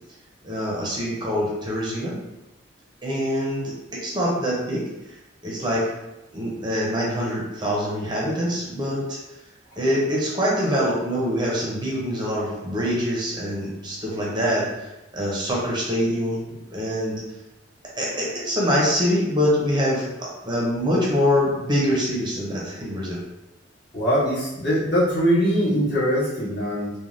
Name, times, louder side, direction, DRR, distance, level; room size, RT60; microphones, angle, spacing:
voice 1, 0.4-2.2 3.0-4.8 5.4-5.9 6.3-9.2 9.8-17.2 18.0-23.2, equal, 25° right, -4 dB, 0.6 m, -24 dB
voice 2, 23.9-26.9, equal, 60° left, -11 dB, 1.5 m, -22 dB
3.2 x 2.1 x 2.5 m, 0.96 s
head